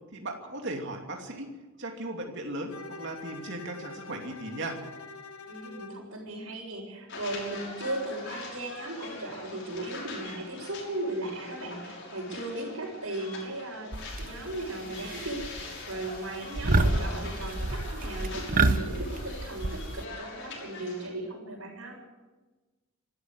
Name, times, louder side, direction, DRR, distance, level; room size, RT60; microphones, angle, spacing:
voice 1, 0.1-1.5 1.8-4.8, right 1 dB, 55° right, 1 dB, 2.8 m, -37 dB
Bowed string instrument, 2.7-6.1, left 3 dB, 85° left, 1.9 m, -45 dB
voice 2, 5.5-22.0, right 1 dB, 75° right, -6 dB, 6.0 m, -37 dB
sound 1, 7.1-21.1, left 3 dB, 55° left, 6.4 m, -43 dB
sound 2, 13.9-14.6 15.0-15.6 15.9-16.2 16.5-20.1, right 2 dB, 40° right, 1.1 m, -28 dB
26.0 x 13.5 x 8.1 m, 1.2 s
head